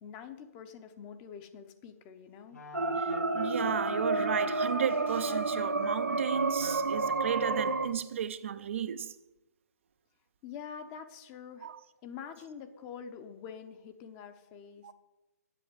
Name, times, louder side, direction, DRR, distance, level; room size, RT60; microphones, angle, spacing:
voice 1, 0.0-2.6 10.4-11.7 12.0-14.9, left 7 dB, 25° left, 0.9 m, -46 dB
sound 1, 2.5-8.1, left 3 dB, 65° left, 1.5 m, -47 dB
sound 2, 2.7-7.9, right 3 dB, 85° right, 0.9 m, -30 dB
voice 2, 3.0-9.2 11.6-11.8 14.8-14.9, right 8 dB, 45° right, 0.5 m, -34 dB
7.9 x 6.8 x 8.0 m
figure-of-eight pair, 135°, 9 cm